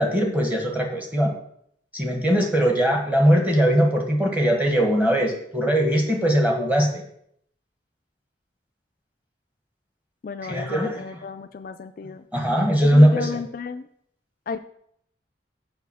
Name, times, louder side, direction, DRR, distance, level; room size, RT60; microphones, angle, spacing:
voice 1, 0.0-1.3 1.9-7.0 10.4-11.2 12.3-13.3, equal, 10° right, 2 dB, 1.3 m, -20 dB
voice 2, 10.2-12.3 12.8-13.9 14.5-14.6, left 5 dB, 45° left, 9 dB, 0.3 m, -33 dB
6.9 x 5.6 x 6.1 m, 0.69 s
head